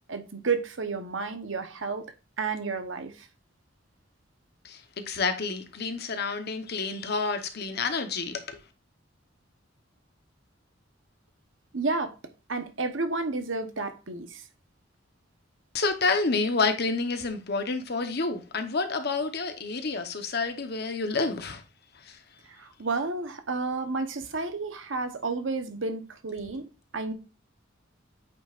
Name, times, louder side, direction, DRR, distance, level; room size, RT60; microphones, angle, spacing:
voice 1, 0.1-2.1 2.4-3.3 11.7-12.1 12.5-14.4 22.4-26.7 26.9-27.1, right 3 dB, 80° right, 1.0 m, -31 dB
voice 2, 4.6-8.6 15.7-21.6 21.9-22.2, left 4 dB, 55° left, 1.0 m, -29 dB
8.7 x 5.4 x 2.5 m
head